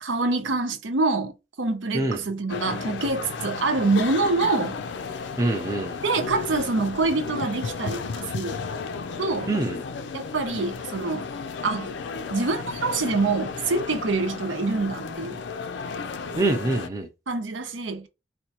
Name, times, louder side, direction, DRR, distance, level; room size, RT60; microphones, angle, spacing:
voice 1, 0.0-4.8 6.0-8.6 9.2-9.5 10.1-11.3 11.6-11.9 12.3-15.4 17.3-18.1, right 3 dB, 90° right, 0.7 m, -26 dB
sound 1, 2.5-16.9, left 5 dB, 75° left, 0.4 m, -33 dB
voice 2, 5.4-6.0 9.4-9.8 16.4-17.1, right 2 dB, 20° right, 0.6 m, -25 dB
4.2 x 2.2 x 2.9 m
head